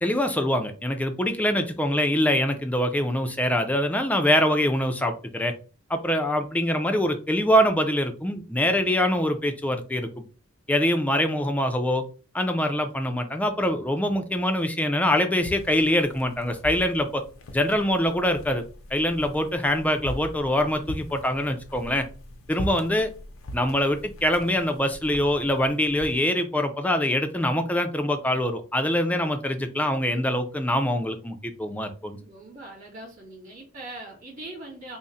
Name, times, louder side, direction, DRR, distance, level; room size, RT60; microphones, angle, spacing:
voice 1, 0.0-5.5 5.9-10.1 10.7-12.0 12.3-17.2 17.5-18.6 18.9-22.1 22.5-23.1 23.5-32.2, left 1 dB, 5° left, 6 dB, 0.4 m, -24 dB
sound 1, 15.4-26.1, equal, 85° left, 0.6 m, -40 dB
voice 2, 32.2-35.0, right 2 dB, 40° right, -2 dB, 1.9 m, -41 dB
3.6 x 2.1 x 4.0 m, 0.38 s
head